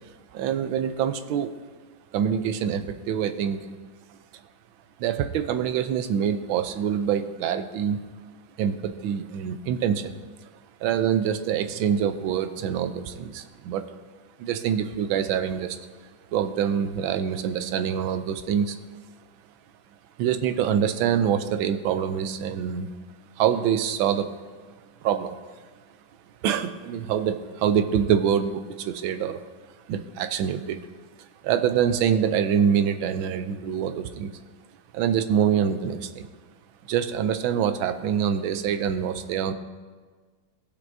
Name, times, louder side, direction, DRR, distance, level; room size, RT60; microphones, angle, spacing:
voice 1, 0.3-1.5 2.1-3.7 5.0-8.0 8.6-10.2 10.8-13.8 14.4-15.8 16.3-18.8 20.2-22.9 23.4-24.4 25.0-25.4 26.4-29.4 29.9-30.8 31.4-34.3 34.9-36.3 36.9-39.5, right 8 dB, 85° right, 9 dB, 1.4 m, -25 dB
16.0 x 6.7 x 2.6 m, 1.5 s
omnidirectional pair, 2.2 m